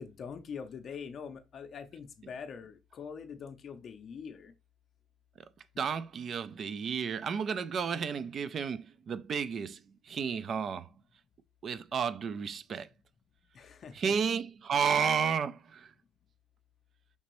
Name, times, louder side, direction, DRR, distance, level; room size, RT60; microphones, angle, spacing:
voice 1, 0.0-4.5 13.5-14.1, left 6 dB, 45° left, 0.6 m, -44 dB
voice 2, 5.8-10.9 11.6-12.9 13.9-15.9, right 6 dB, 40° right, 0.4 m, -32 dB
5.3 x 2.9 x 3.0 m
cardioid pair, 120°, 0 cm